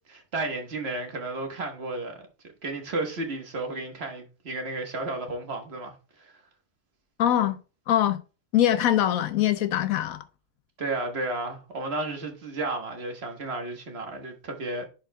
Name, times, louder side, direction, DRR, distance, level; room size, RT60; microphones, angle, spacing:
voice 1, 0.1-2.2 2.6-6.3 10.8-14.9, right 2 dB, 45° right, 1.5 m, -33 dB
voice 2, 7.2-7.6 7.9-8.2 8.5-10.2, left 11 dB, 75° left, 1.2 m, -23 dB
10.5 x 4.7 x 2.2 m
omnidirectional pair, 1.5 m